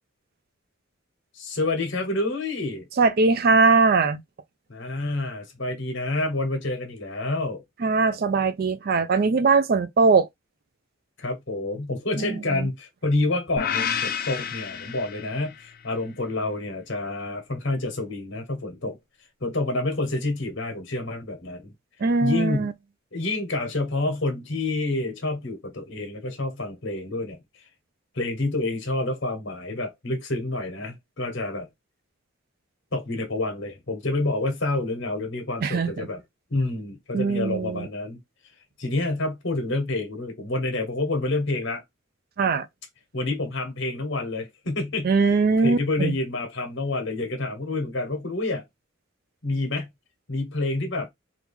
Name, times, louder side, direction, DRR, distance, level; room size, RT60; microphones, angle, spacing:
voice 1, 1.3-2.9 4.7-7.6 11.2-19.0 19.4-21.7 22.2-22.7 23.1-27.4 28.1-31.7 32.9-36.2 36.5-38.2 38.8-41.8 43.1-45.1 45.6-48.6 49.4-49.9 50.3-51.1, left 2 dB, 60° left, 1.2 m, -28 dB
voice 2, 3.0-4.2 7.8-10.3 12.2-12.7 22.0-22.7 35.6-36.1 37.1-37.9 42.4-42.7 45.0-46.1, right 4 dB, 50° right, 0.4 m, -21 dB
sound 1, 13.6-15.8, left 7 dB, 45° left, 0.4 m, -30 dB
2.9 x 2.4 x 3.5 m
head